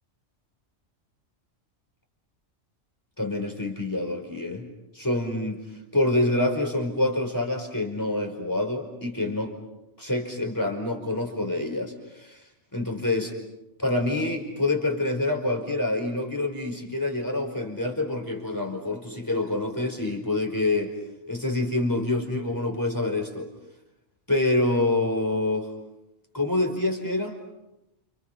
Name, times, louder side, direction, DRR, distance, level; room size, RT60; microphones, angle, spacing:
voice 1, 3.2-4.6 4.9-5.6 5.9-9.5 10.0-12.4 12.7-13.4 13.8-20.9 21.3-23.5 24.3-25.7 26.3-27.3, left 2 dB, 15° left, 3 dB, 5.2 m, -26 dB
30.0 x 30.0 x 5.9 m, 0.89 s
omnidirectional pair, 1.3 m